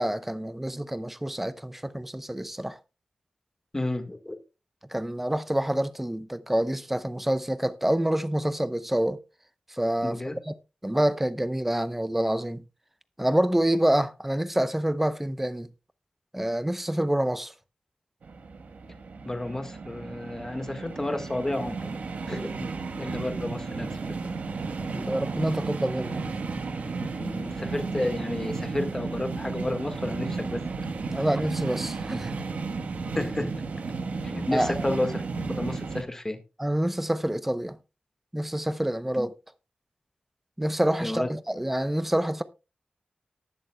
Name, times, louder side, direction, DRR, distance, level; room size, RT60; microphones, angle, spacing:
voice 1, 0.0-2.8 4.9-9.2 9.7-10.2 10.5-10.6 10.8-12.6 13.2-15.7 16.3-17.5 24.9-26.3 31.1-32.3 34.5-34.7 36.6-37.8 38.3-39.3 40.6-42.4, right 1 dB, 10° right, 0.7 m, -27 dB
voice 2, 3.7-4.4 10.0-10.4 19.2-21.9 22.3-24.2 27.0-30.6 33.1-33.6 34.2-35.2 35.6-36.4 39.2-39.3 41.0-41.3, left 1 dB, 20° left, 1.6 m, -31 dB
sound 1, 18.2-36.0, right 4 dB, 90° right, 1.3 m, -33 dB
19.0 x 7.0 x 2.2 m
wide cardioid pair, 115°, 2 cm